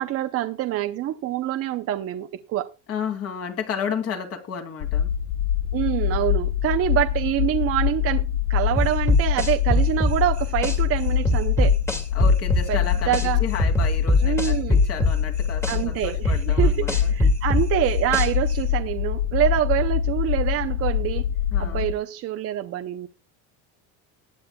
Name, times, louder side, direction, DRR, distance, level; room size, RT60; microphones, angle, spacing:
voice 1, 0.0-2.7 5.7-11.8 12.7-12.8 13.1-13.4 14.2-14.8 15.7-21.2 21.6-23.1, right 12 dB, 40° right, 0.7 m, -26 dB
voice 2, 2.9-5.1 12.1-17.1 21.5-21.9, left 7 dB, 40° left, 2.6 m, -32 dB
sound 1, 4.8-21.9, left 10 dB, 65° left, 0.8 m, -25 dB
sound 2, 8.8-10.8 11.3-13.3 13.6-15.8 16.3-18.5, left 1 dB, 10° left, 1.9 m, -21 dB
20.0 x 8.4 x 2.3 m
cardioid pair, 140°, 35 cm